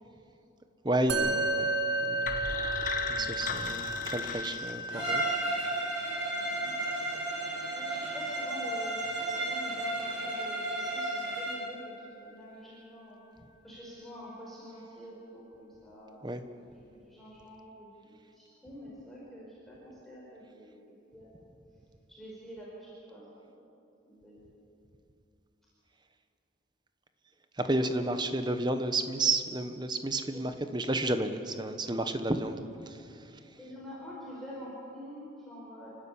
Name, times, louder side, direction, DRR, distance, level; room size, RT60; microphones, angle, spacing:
voice 1, 0.8-1.7 2.0-2.5 3.1-5.2 5.6-5.9 16.2-16.4 27.6-32.6, right 2 dB, 20° right, 8 dB, 1.0 m, -31 dB
Musical instrument, 1.1-10.6, right 1 dB, 65° right, 1.7 m, -35 dB
sound 1, 2.2-5.3, left 4 dB, 40° left, 1.3 m, -37 dB
voice 2, 3.1-3.8 6.4-6.9 7.7-13.2 13.6-20.8 21.1-21.3 22.1-23.7 24.0-24.4 27.8-28.1 30.3-30.4 32.4-32.5 33.6-35.9, equal, ahead, -7 dB, 4.7 m, -47 dB
Bowed string instrument, 4.9-11.7, right 2 dB, 90° right, 7.5 m, -33 dB
29.0 x 12.5 x 8.6 m, 2.8 s
head